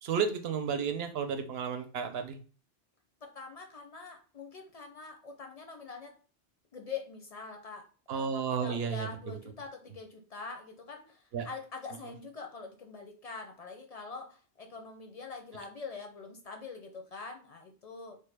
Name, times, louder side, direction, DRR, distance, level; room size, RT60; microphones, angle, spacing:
voice 1, 0.0-2.4 8.1-9.1 11.3-11.5, right 6 dB, 70° right, 7 dB, 0.8 m, -32 dB
voice 2, 3.2-6.1 6.7-18.2, left 4 dB, 50° left, 3 dB, 0.5 m, -44 dB
3.5 x 2.2 x 3.2 m, 0.39 s
omnidirectional pair, 1.1 m